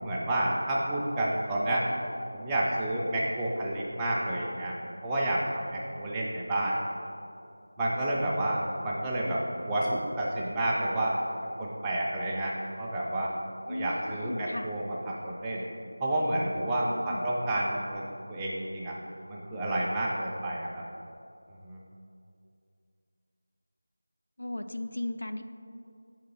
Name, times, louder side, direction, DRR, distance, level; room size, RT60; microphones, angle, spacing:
voice 1, 0.0-1.9 2.3-4.7 5.0-6.8 7.8-11.2 11.6-13.3 13.6-15.6 16.0-18.0 18.3-19.0 19.3-20.8 21.6-21.8, right 1 dB, 5° right, -6 dB, 0.3 m, -30 dB
voice 2, 13.7-14.7 16.8-17.3 24.4-25.4, left 1 dB, 85° left, 8 dB, 0.4 m, -36 dB
5.1 x 3.8 x 5.3 m, 2.5 s
figure-of-eight pair, 175°, 0 cm